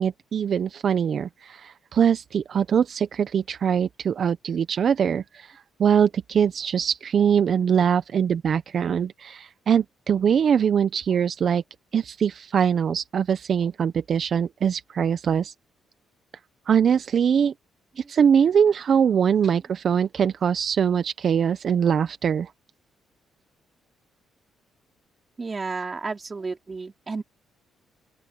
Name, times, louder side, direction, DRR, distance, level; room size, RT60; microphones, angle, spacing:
voice 1, 0.0-11.6 11.9-15.5 16.7-17.5 18.0-22.5, right 7 dB, 55° right, 0.7 m, -22 dB
voice 2, 25.4-27.2, right 4 dB, 30° right, 3.9 m, -32 dB
open air
cardioid pair, 90°, 0 cm